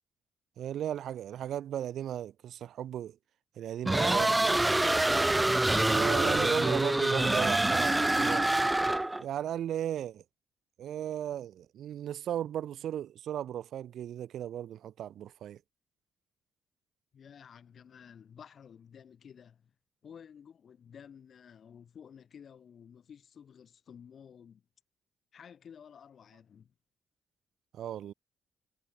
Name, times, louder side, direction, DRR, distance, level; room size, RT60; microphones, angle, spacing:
voice 1, 0.6-3.2 3.6-4.6 5.9-8.5 9.2-10.2 10.8-15.6 27.7-28.1, right 10 dB, 65° right, 0.8 m, -36 dB
sound 1, 3.9-9.2, right 2 dB, 10° right, 0.5 m, -26 dB
sound 2, 6.3-8.3, right 12 dB, 85° right, 3.2 m, -51 dB
voice 2, 17.1-19.7 20.0-24.6 25.3-26.7, left 7 dB, 45° left, 5.8 m, -53 dB
cardioid pair, 145°, 0 cm